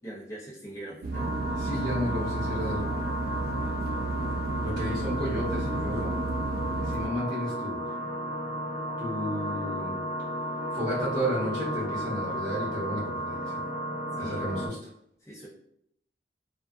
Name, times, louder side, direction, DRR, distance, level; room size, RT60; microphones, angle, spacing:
voice 1, 0.0-1.3 14.1-14.4 15.2-15.5, right 1 dB, 15° left, -7 dB, 0.6 m, -41 dB
sound 1, 1.0-7.1, right 3 dB, 55° right, 0.3 m, -32 dB
sound 2, 1.1-14.7, equal, 55° left, 1.0 m, -34 dB
voice 2, 1.6-2.8 4.6-6.1 6.8-7.9 9.0-9.9 10.7-13.5 14.2-14.8, equal, 25° right, -11 dB, 1.1 m, -32 dB
2.4 x 2.3 x 2.4 m, 0.71 s
head